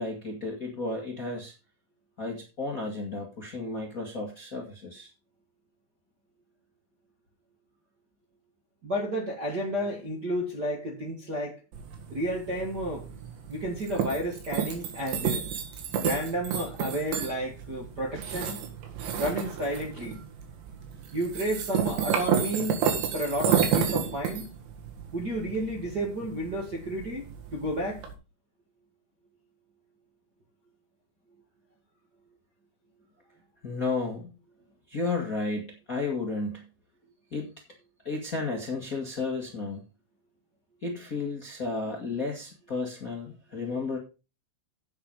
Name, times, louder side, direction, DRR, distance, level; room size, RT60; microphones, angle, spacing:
voice 1, 0.0-1.5 2.2-5.1 33.6-34.3 34.9-36.7 37.3-37.5 38.0-39.8 40.8-44.0, left 3 dB, 70° left, 0.8 m, -33 dB
voice 2, 8.8-11.6 12.1-13.1 13.5-15.4 16.0-18.6 19.2-20.2 21.1-22.8 23.1-24.5 25.1-27.2 27.5-28.0, equal, 45° right, 1.3 m, -31 dB
sound 1, 11.7-28.1, right 8 dB, 85° right, 4.2 m, -31 dB
8.5 x 8.2 x 5.4 m
omnidirectional pair, 5.0 m